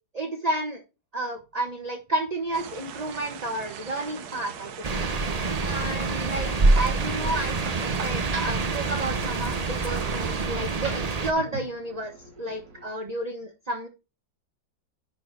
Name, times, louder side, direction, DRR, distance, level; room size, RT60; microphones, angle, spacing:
voice 1, 0.1-0.8 1.1-4.7 5.0-5.1 5.6-13.9, right 1 dB, 25° right, 3 dB, 1.2 m, -31 dB
sound 1, 2.2-12.8, right 2 dB, 85° right, 3.2 m, -45 dB
sound 2, 2.5-10.5, right 8 dB, 65° right, 1.3 m, -40 dB
sound 3, 4.8-11.3, right 3 dB, 40° right, 0.5 m, -26 dB
10.0 x 4.3 x 4.9 m, 0.29 s
omnidirectional pair, 1.9 m